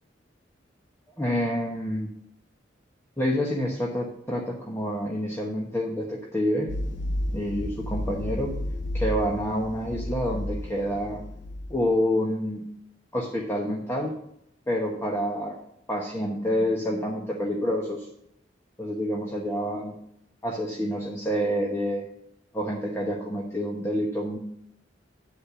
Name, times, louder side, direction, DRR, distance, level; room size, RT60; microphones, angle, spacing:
voice 1, 1.2-2.1 3.2-6.7 7.3-8.5 8.9-11.2 11.7-12.6 13.1-14.1 14.7-15.6 15.9-18.1 18.8-19.9 20.4-22.0 22.5-24.4, equal, 15° left, -2 dB, 1.1 m, -28 dB
sound 1, 6.7-11.9, left 1 dB, 85° left, 1.3 m, -32 dB
10.0 x 4.3 x 6.7 m, 0.75 s
head